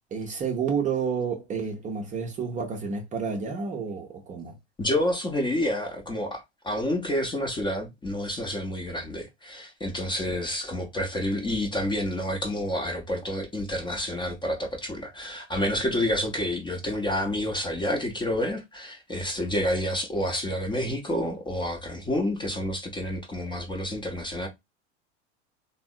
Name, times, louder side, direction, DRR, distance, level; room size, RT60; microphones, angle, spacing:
voice 1, 0.1-4.5, right 6 dB, 20° right, 0.6 m, -30 dB
voice 2, 4.8-24.5, left 1 dB, 15° left, 0.7 m, -29 dB
3.4 x 2.0 x 2.3 m
figure-of-eight pair, 80°, 35 cm